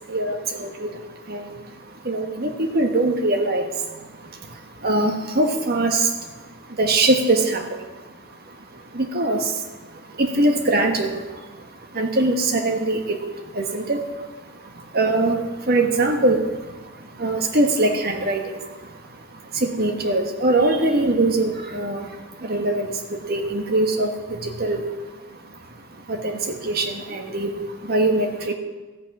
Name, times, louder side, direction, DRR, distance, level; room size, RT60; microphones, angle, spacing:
voice 1, 0.0-8.1 8.4-28.5, right 2 dB, 50° right, 4 dB, 1.4 m, -24 dB
13.5 x 8.5 x 6.1 m, 1.3 s
head